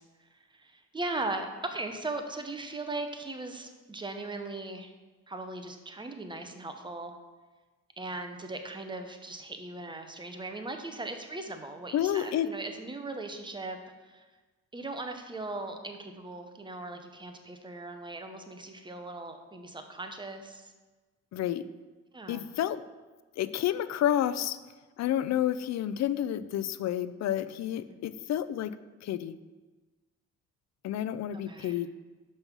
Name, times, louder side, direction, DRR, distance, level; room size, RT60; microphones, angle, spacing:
voice 1, 0.0-4.9 5.3-7.1 8.0-13.8 14.0-14.3 14.7-20.7 22.1-22.5 27.9-28.0 31.3-31.7, right 2 dB, 15° right, 5 dB, 0.8 m, -39 dB
voice 2, 11.9-12.5 21.3-21.6 22.3-22.8 23.4-24.6 25.0-29.3 30.8-31.9, left 11 dB, 60° left, 14 dB, 0.4 m, -30 dB
5.4 x 5.3 x 6.0 m, 1.3 s
cardioid pair, 115°, 30 cm